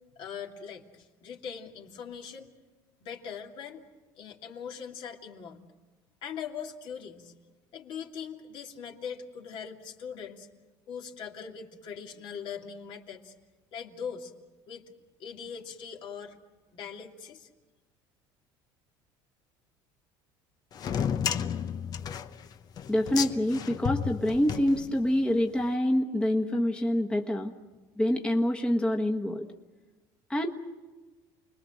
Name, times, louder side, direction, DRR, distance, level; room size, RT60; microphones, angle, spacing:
voice 1, 0.1-2.5 3.0-3.9 4.2-5.6 6.2-7.3 7.7-10.5 10.9-13.3 13.7-14.3 14.7-14.8 15.2-16.4 16.7-17.5, left 7 dB, 55° left, 1 dB, 2.7 m, -41 dB
sound 1, 20.7-25.3, left 8 dB, 40° left, 1.0 m, -32 dB
voice 2, 22.9-27.5 28.0-29.5 30.3-30.5, left 1 dB, 10° left, 1 dB, 1.5 m, -26 dB
29.5 x 21.0 x 6.4 m, 1.3 s
cardioid pair, 120°, 10 cm